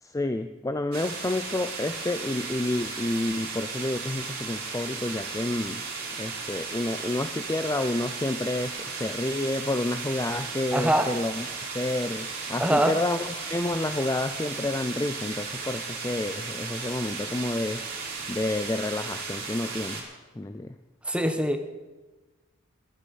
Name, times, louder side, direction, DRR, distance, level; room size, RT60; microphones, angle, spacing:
voice 1, 0.0-5.8 6.2-11.5 11.7-17.8 18.3-20.0 20.4-20.7, left 2 dB, 15° left, 9 dB, 0.4 m, -29 dB
sound 1, 0.9-20.0, right 4 dB, 45° right, 4.0 m, -35 dB
voice 2, 10.7-11.1 12.6-12.9 21.1-21.6, right 1 dB, 5° right, 6 dB, 1.1 m, -23 dB
11.5 x 9.5 x 9.2 m, 1.2 s
head